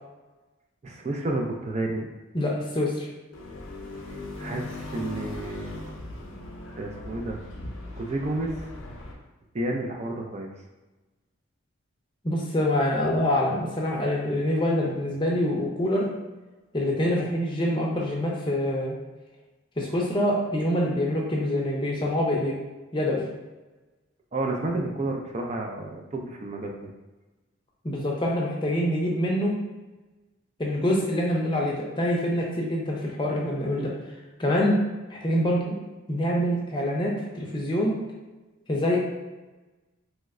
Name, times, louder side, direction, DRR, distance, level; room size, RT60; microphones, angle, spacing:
voice 1, 0.8-2.1 4.4-5.9 6.8-7.4 8.0-8.6 9.5-10.5 24.3-26.9, right 2 dB, 30° right, 1 dB, 0.3 m, -31 dB
voice 2, 2.3-3.1 12.2-16.1 16.7-19.0 19.8-22.6 22.9-23.2 27.8-29.6 30.6-33.9 34.4-34.8 35.1-35.8 36.1-38.0 38.7-39.0, left 1 dB, 20° left, -3 dB, 0.5 m, -25 dB
sound 1, 3.3-9.1, left 2 dB, 75° left, 0.5 m, -39 dB
3.0 x 2.1 x 3.5 m, 1.1 s
head